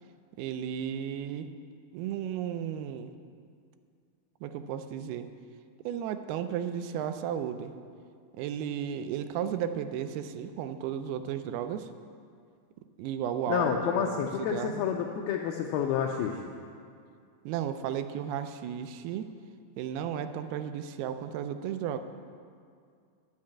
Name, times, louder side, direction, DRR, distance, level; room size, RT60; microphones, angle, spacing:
voice 1, 0.4-1.5 1.9-3.1 4.4-5.3 5.8-7.7 8.4-11.9 13.0-14.9 17.5-19.3 19.8-22.0, right 9 dB, 80° right, 9 dB, 2.4 m, -34 dB
voice 2, 13.5-16.4, left 8 dB, 80° left, 2 dB, 2.4 m, -29 dB
10.5 x 6.3 x 8.4 m, 2.2 s
omnidirectional pair, 4.8 m